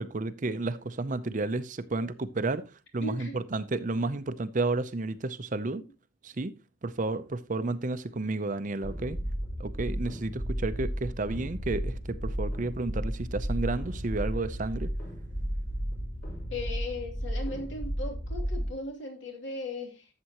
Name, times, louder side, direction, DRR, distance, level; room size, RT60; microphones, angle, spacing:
voice 1, 0.0-2.6 2.9-5.8 6.2-6.5 6.8-9.2 9.6-14.9, right 2 dB, 40° right, 0.6 m, -31 dB
voice 2, 3.0-3.3 16.5-20.1, left 2 dB, 65° left, 2.9 m, -37 dB
sound 1, 8.8-18.7, equal, 50° left, 5.3 m, -33 dB
12.5 x 7.5 x 2.9 m
head